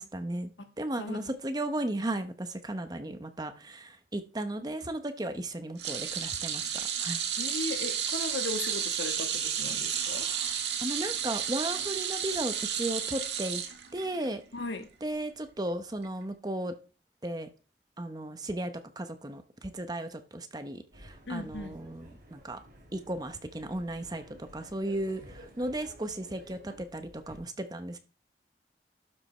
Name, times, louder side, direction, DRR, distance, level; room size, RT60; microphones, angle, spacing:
voice 1, 0.0-0.5 0.8-6.7 7.0-7.2 10.0-13.6 13.9-14.4 15.0-16.7 17.2-17.5 18.0-22.6 22.9-24.2 24.5-28.0, right 1 dB, 20° right, 0.9 m, -35 dB
voice 2, 1.0-1.3 7.4-10.3 14.5-14.9 21.3-21.7, left 3 dB, 85° left, 1.4 m, -37 dB
sound 1, 5.8-14.3 14.6-14.8 16.0-16.1, right 8 dB, 80° right, 1.6 m, -32 dB
sound 2, 20.9-27.4, equal, 55° right, 3.9 m, -52 dB
12.0 x 5.2 x 4.3 m
head